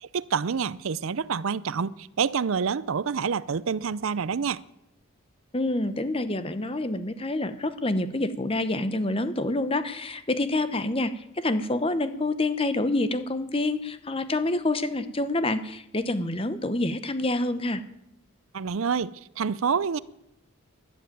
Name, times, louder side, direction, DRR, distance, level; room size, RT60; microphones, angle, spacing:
voice 1, 0.0-4.6 18.5-20.0, right 6 dB, 65° right, 0.5 m, -27 dB
voice 2, 5.5-17.8, left 2 dB, 25° left, 0.9 m, -27 dB
13.0 x 11.5 x 9.1 m
head